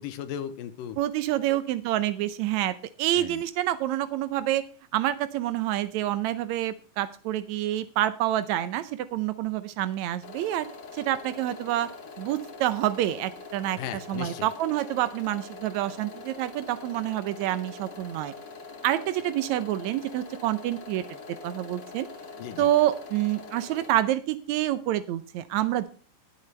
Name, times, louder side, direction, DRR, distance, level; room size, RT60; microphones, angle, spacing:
voice 1, 0.0-1.0 1.5-1.6 3.2-3.4 13.8-14.5 22.4-22.7, left 9 dB, 80° left, 12 dB, 2.4 m, -36 dB
voice 2, 1.0-4.6 4.9-10.7 10.9-11.9 12.2-13.8 14.1-18.3 18.8-21.0 21.4-22.1 22.6-25.9, right 13 dB, 90° right, 13 dB, 1.6 m, -27 dB
sound 1, 10.2-23.9, left 4 dB, 35° left, 2.4 m, -44 dB
20.5 x 7.5 x 3.3 m, 0.39 s
omnidirectional pair, 4.0 m